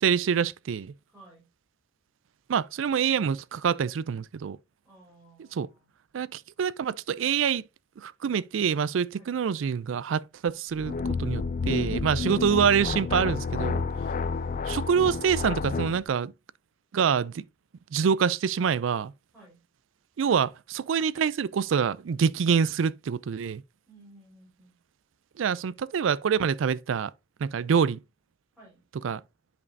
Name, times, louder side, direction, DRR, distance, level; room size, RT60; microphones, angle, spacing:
voice 1, 0.0-0.9 2.5-4.6 5.6-5.7 6.1-7.6 8.0-13.8 14.7-16.3 16.9-17.4 17.9-19.1 20.2-23.6 25.4-27.1 27.4-28.0 29.0-29.2, right 7 dB, 80° right, 0.4 m, -26 dB
voice 2, 1.1-1.5 4.8-5.9 9.2-9.4 19.3-19.6 23.9-24.8 28.6-28.9, right 2 dB, 5° right, 3.9 m, -56 dB
sound 1, 10.8-16.0, left 4 dB, 45° left, 0.4 m, -30 dB
9.6 x 5.3 x 2.6 m
head